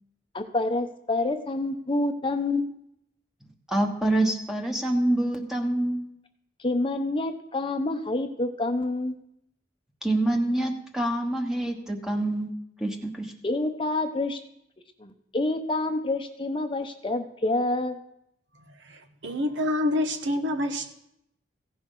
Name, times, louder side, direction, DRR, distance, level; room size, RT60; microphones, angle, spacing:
voice 1, 0.3-2.7 6.6-9.1 13.4-14.4 15.0-18.0, left 2 dB, 25° left, 7 dB, 0.8 m, -27 dB
voice 2, 3.7-6.1 10.0-12.5 12.8-13.3, right 1 dB, 5° right, 1 dB, 1.2 m, -26 dB
voice 3, 18.8-20.9, left 1 dB, 70° right, 5 dB, 1.1 m, -27 dB
16.0 x 10.5 x 3.9 m, 0.78 s
head